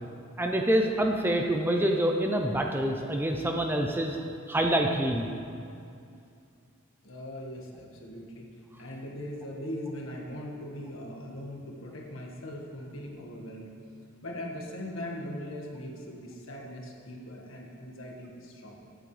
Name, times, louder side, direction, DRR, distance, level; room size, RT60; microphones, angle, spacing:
voice 1, 0.4-5.3, right 1 dB, 10° right, 2 dB, 0.5 m, -26 dB
voice 2, 7.0-8.5 8.8-13.7 14.2-19.0, left 1 dB, 70° left, -1 dB, 1.6 m, -40 dB
14.5 x 8.9 x 3.3 m, 2.5 s
head